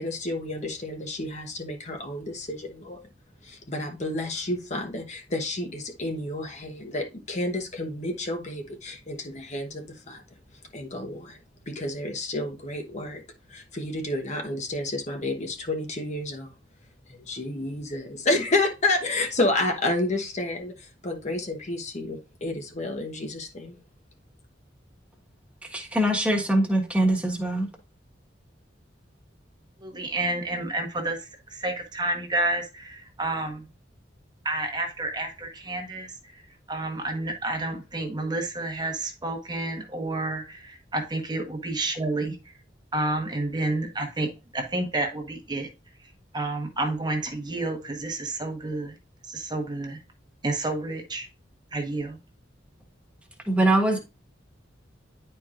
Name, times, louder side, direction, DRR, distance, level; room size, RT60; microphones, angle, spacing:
voice 1, 0.0-3.0 3.4-10.2 10.7-11.4 11.7-13.2 13.5-16.5 17.1-23.8, left 2 dB, 40° left, 1.0 m, -30 dB
voice 2, 25.7-27.7 53.5-54.0, right 1 dB, 5° right, 1.3 m, -22 dB
voice 3, 29.8-33.7 34.4-36.4 36.7-42.4 42.9-45.7 46.3-48.9 49.3-50.0 50.4-51.3 51.7-52.2, right 2 dB, 25° right, 1.1 m, -30 dB
10.0 x 4.5 x 2.5 m
head